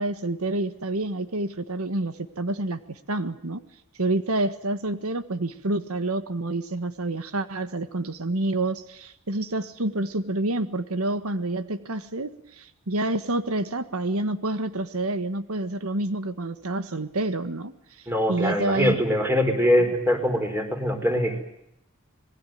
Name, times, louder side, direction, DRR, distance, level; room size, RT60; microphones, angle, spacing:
voice 1, 0.0-3.6 4.0-18.0 18.3-19.0, right 2 dB, 90° right, 11 dB, 1.5 m, -28 dB
voice 2, 18.1-21.4, equal, 10° right, 5 dB, 4.6 m, -23 dB
26.5 x 20.5 x 9.2 m, 0.80 s
head